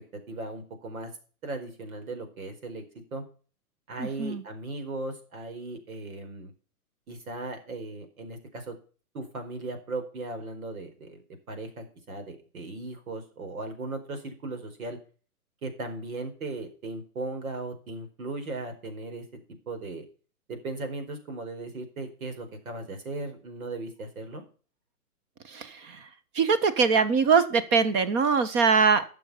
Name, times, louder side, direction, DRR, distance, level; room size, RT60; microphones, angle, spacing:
voice 1, 0.3-1.1 1.4-2.8 3.1-3.2 3.9-6.5 7.1-8.8 9.1-11.2 11.5-15.0 15.6-19.2 19.7-20.0 20.5-24.4, right 2 dB, 65° right, 7 dB, 4.6 m, -37 dB
voice 2, 4.0-4.4 25.4-26.1 26.3-29.0, right 5 dB, 25° right, 12 dB, 1.3 m, -23 dB
12.5 x 7.0 x 5.7 m, 0.38 s
hypercardioid pair, 140°, 45 cm